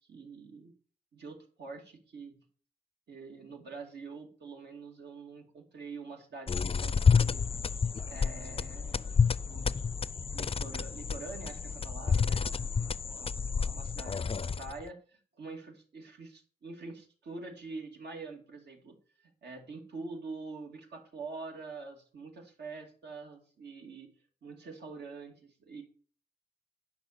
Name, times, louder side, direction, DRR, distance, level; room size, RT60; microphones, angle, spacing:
voice 1, 0.1-0.7 1.1-2.3 3.1-7.5 8.0-9.7 10.3-13.3 13.6-18.9 19.2-24.1 24.4-25.8, right 4 dB, 80° right, 1 dB, 2.6 m, -45 dB
sound 1, 6.5-14.9, left 6 dB, 35° left, 0.4 m, -29 dB
10.5 x 5.8 x 6.6 m, 0.44 s
cardioid pair, 90°, 17 cm